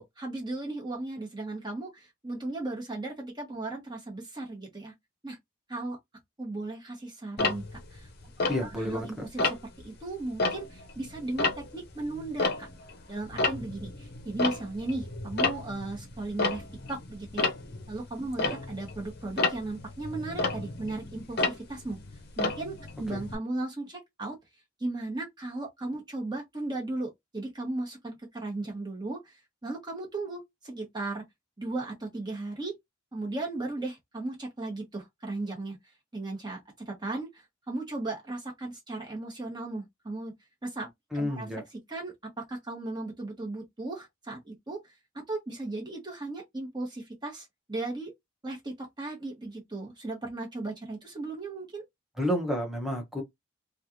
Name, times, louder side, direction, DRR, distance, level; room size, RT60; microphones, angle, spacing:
voice 1, 0.0-4.9 5.2-5.4 5.7-6.0 6.4-7.6 7.9-8.1 8.6-9.4 9.8-12.7 13.1-16.6 16.9-17.5 17.9-22.0 22.4-24.3 24.8-29.3 29.6-31.2 31.6-32.8 33.1-35.8 36.1-36.6 36.9-40.3 40.6-40.9 41.1-41.5 41.9-44.8 45.3-48.1 48.4-51.8, right 2 dB, 20° right, 1.2 m, -36 dB
Tick-tock, 7.4-9.0 9.4-9.8 10.2-13.0 13.2-23.4, left 3 dB, 50° left, 0.7 m, -31 dB
voice 2, 8.5-9.3 23.1-23.2 41.1-41.6 52.2-53.2, equal, ahead, 0.9 m, -30 dB
3.2 x 2.4 x 2.7 m
head